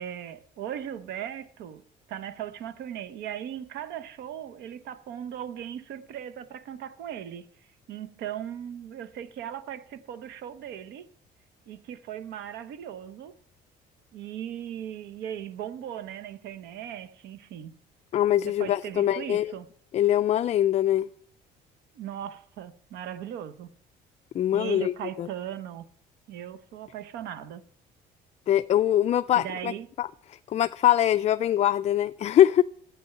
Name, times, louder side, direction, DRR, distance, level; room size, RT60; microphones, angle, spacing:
voice 1, 0.0-7.5 7.9-11.1 11.7-13.3 14.1-17.7 18.5-19.7 21.9-23.7 24.5-25.8 26.3-27.6 29.3-29.9, right 10 dB, 85° right, 0.9 m, -38 dB
voice 2, 18.1-19.5 19.9-21.1 24.3-24.9 25.2-25.3 28.5-29.7 30.0-30.1 30.5-32.6, left 11 dB, 40° left, 0.4 m, -23 dB
12.0 x 8.6 x 5.8 m
cardioid pair, 110°, 17 cm